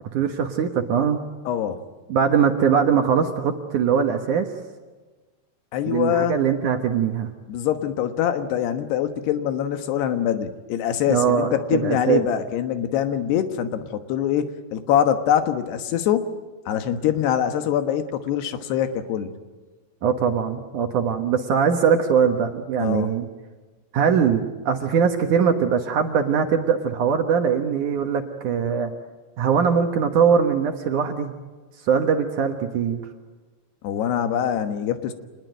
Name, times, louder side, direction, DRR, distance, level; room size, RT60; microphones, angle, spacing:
voice 1, 0.1-1.2 2.1-4.5 5.9-7.3 11.1-12.2 20.0-23.3 23.9-28.9 29.4-31.3 31.9-33.0, right 7 dB, 60° right, 5 dB, 2.3 m, -21 dB
voice 2, 1.5-1.8 5.7-6.4 7.5-16.3 16.7-19.3 22.8-23.1 33.8-35.1, left 9 dB, 75° left, 9 dB, 3.4 m, -24 dB
27.0 x 20.5 x 9.1 m, 1.3 s
omnidirectional pair, 4.8 m